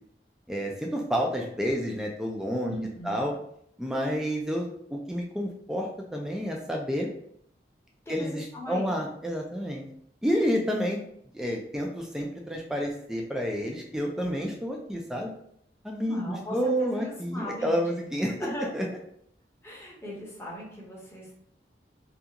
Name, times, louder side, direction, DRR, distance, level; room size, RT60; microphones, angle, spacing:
voice 1, 0.5-2.7 3.0-3.3 3.8-7.1 8.1-9.9 10.2-11.0 11.3-15.3 15.8-18.5 18.7-18.9, equal, 5° right, 0 dB, 0.3 m, -29 dB
voice 2, 2.7-3.2 8.1-8.9 16.0-18.0 18.4-18.7 19.6-21.3, equal, 15° left, -5 dB, 0.7 m, -38 dB
2.4 x 2.3 x 2.8 m, 0.70 s
head